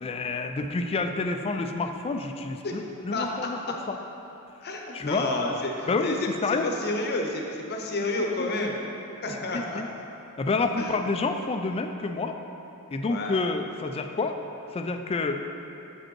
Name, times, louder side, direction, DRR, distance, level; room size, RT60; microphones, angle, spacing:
voice 1, 0.0-4.0 4.9-5.3 5.9-6.7 8.4-8.5 9.5-9.9 10.4-12.4 12.9-14.4 14.7-15.4, left 3 dB, 25° left, 6 dB, 0.3 m, -29 dB
voice 2, 3.1-3.5 4.6-6.1 6.6-8.7 9.2-9.8 10.8-10.9 13.0-13.4, left 2 dB, 45° left, 1 dB, 0.7 m, -30 dB
7.4 x 5.1 x 4.5 m, 2.9 s
head